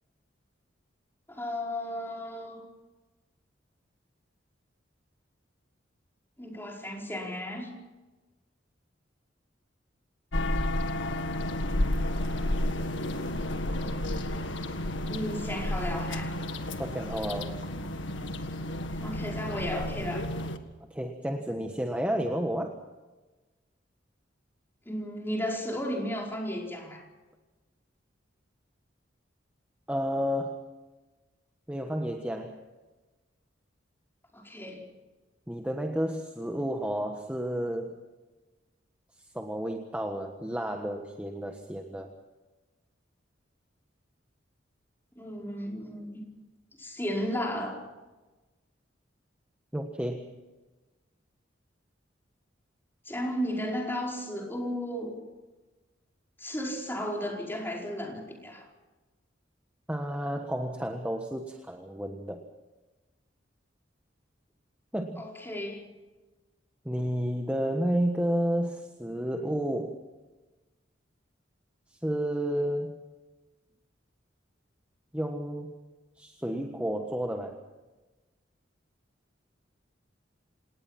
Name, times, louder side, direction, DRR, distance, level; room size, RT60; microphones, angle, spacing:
voice 1, 1.3-2.6 6.4-7.7 15.1-16.3 19.0-20.3 24.8-27.0 34.3-34.9 45.1-46.2 46.8-47.8 53.0-55.2 56.4-58.7 65.2-65.9, equal, 10° left, 0 dB, 4.9 m, -34 dB
sound 1, 10.3-20.6, left 1 dB, 75° left, 1.7 m, -31 dB
voice 2, 16.8-17.6 20.9-22.7 29.9-30.6 31.7-32.6 35.5-38.0 39.3-42.1 49.7-50.2 59.9-62.4 64.9-65.2 66.8-70.0 72.0-72.9 75.1-75.7 76.2-77.6, equal, 5° right, 4 dB, 1.4 m, -31 dB
28.0 x 19.0 x 5.9 m, 1.2 s
head